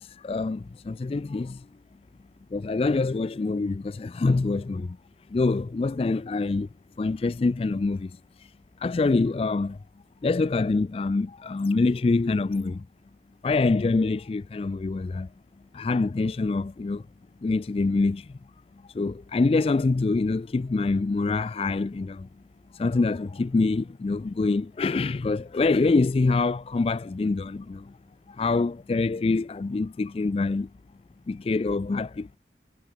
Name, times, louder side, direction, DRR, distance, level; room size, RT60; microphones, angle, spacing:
voice 1, 0.0-1.7 2.5-5.0 5.3-6.7 7.0-8.2 8.8-9.8 10.2-12.9 13.4-15.3 15.7-17.0 17.4-18.3 18.9-22.3 22.7-27.9 28.3-30.7 31.3-32.4, left 3 dB, 30° left, 0.3 m, -25 dB
head